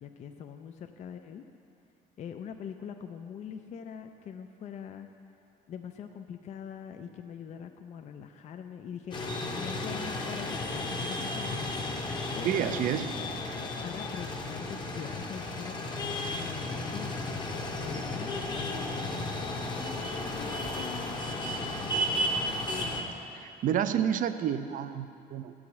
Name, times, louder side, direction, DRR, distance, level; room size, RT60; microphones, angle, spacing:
voice 1, 0.0-1.4 2.2-5.1 5.7-11.7 12.3-13.4 13.8-17.1 17.8-22.6, left 7 dB, 45° left, 6 dB, 0.4 m, -43 dB
sound 1, 9.1-23.0, left 1 dB, 25° left, 0.8 m, -34 dB
voice 2, 12.4-13.1 23.4-25.5, right 9 dB, 50° right, 11 dB, 0.4 m, -29 dB
7.9 x 4.8 x 7.1 m, 2.6 s
cardioid pair, 110°, 17 cm